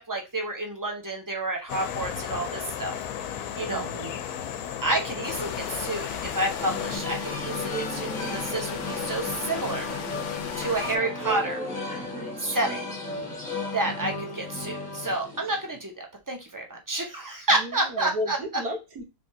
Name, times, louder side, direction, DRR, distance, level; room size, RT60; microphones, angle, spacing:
voice 1, 0.0-3.0 3.3-3.9 4.8-9.9 10.6-11.6 12.4-12.9 13.7-18.4, right 2 dB, 25° right, 2 dB, 0.4 m, -29 dB
sound 1, 1.7-7.0, left 9 dB, 85° left, 1.1 m, -35 dB
voice 2, 3.7-4.2 13.1-13.4 17.5-19.0, equal, 80° right, 3 dB, 1.5 m, -34 dB
sound 2, 5.2-11.0, left 7 dB, 65° left, 0.8 m, -36 dB
sound 3, 6.6-15.8, left 2 dB, 5° left, 1.3 m, -34 dB
3.5 x 3.4 x 2.6 m, 0.26 s
omnidirectional pair, 1.6 m